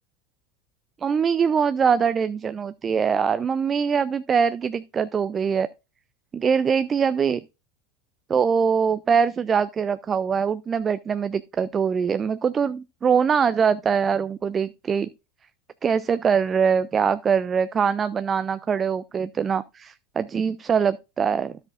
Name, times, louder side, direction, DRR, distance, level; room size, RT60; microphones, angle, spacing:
voice 1, 1.0-5.7 6.3-7.4 8.3-15.1 15.8-21.6, right 6 dB, 25° right, 0.4 m, -23 dB
13.0 x 6.3 x 2.5 m
figure-of-eight pair, 80°, 0 cm